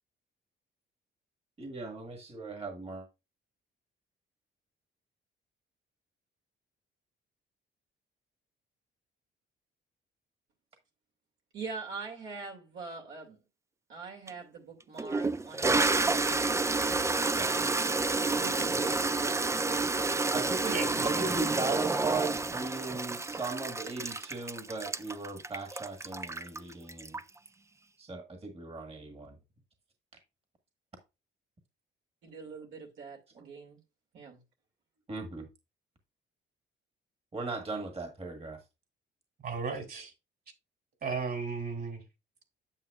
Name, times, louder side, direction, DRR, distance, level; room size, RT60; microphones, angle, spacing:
voice 1, 1.6-3.1 17.3-17.5 20.3-27.2 28.0-29.4 33.4-33.5 35.1-35.5 37.3-38.6, right 3 dB, 30° right, 1.6 m, -38 dB
voice 2, 11.5-13.4 13.9-17.0 18.3-19.5 32.2-33.8 34.1-34.4, right 4 dB, 75° right, 2.4 m, -43 dB
Toilet flush, 14.3-14.4 15.0-27.5, right 3 dB, 15° right, 0.4 m, -29 dB
voice 3, 20.7-21.3 39.4-40.1 41.0-42.0, right 4 dB, 50° right, 3.0 m, -35 dB
9.0 x 7.4 x 2.4 m
cardioid pair, 90°, 20 cm